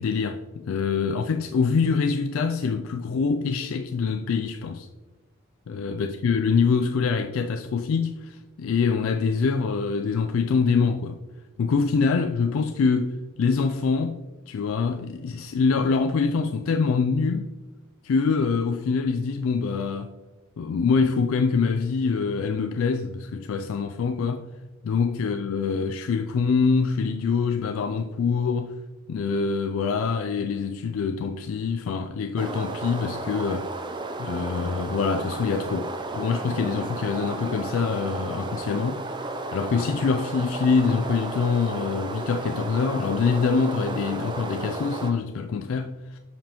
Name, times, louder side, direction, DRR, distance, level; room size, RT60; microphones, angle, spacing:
voice 1, 0.0-4.9 5.7-11.2 11.6-14.2 14.5-17.5 18.0-20.1 20.6-24.5 24.8-28.7 29.1-33.7 34.2-39.0 39.5-46.2, left 5 dB, 70° left, 0.3 m, -25 dB
sound 1, 32.4-45.1, right 2 dB, 20° right, 0.4 m, -33 dB
7.3 x 5.1 x 3.0 m
head